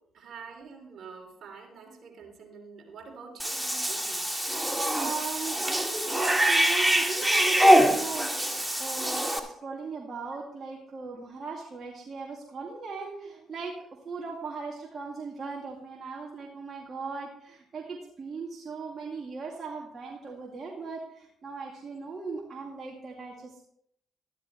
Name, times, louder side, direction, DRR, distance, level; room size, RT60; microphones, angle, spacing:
voice 1, 0.1-4.2, right 5 dB, 60° right, 2 dB, 3.0 m, -46 dB
Cat / Bathtub (filling or washing), 3.4-9.4, right 1 dB, 5° right, 1.7 m, -24 dB
voice 2, 5.0-13.7 14.0-23.6, right 4 dB, 45° right, -2 dB, 2.2 m, -38 dB
13.0 x 12.0 x 3.1 m, 0.70 s
supercardioid pair, 65°, 0 cm